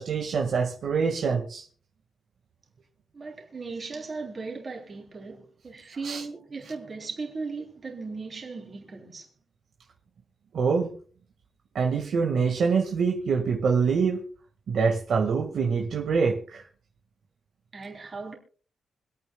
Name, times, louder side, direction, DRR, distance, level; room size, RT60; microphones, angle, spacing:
voice 1, 0.0-1.6 6.0-6.2 10.5-10.9 11.7-14.2 14.7-16.6, right 5 dB, 70° right, 1.9 m, -25 dB
voice 2, 3.1-9.3 17.7-18.3, right 4 dB, 35° right, 3.4 m, -37 dB
26.0 x 9.0 x 2.3 m
wide cardioid pair, 140°, 0 cm